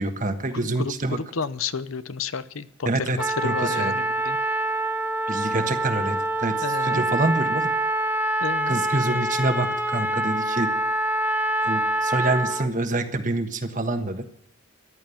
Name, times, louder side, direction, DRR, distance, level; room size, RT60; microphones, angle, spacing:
voice 1, 0.0-1.2 2.9-3.2 3.4-3.9 5.3-7.7 8.7-10.7 11.6-14.2, right 2 dB, 40° right, 7 dB, 1.4 m, -26 dB
voice 2, 0.7-4.4 6.6-7.0 8.4-8.8, left 5 dB, 80° left, 15 dB, 0.8 m, -31 dB
Trumpet, 3.2-12.7, right 1 dB, 10° right, 0.9 m, -25 dB
14.5 x 11.5 x 7.1 m, 0.72 s
head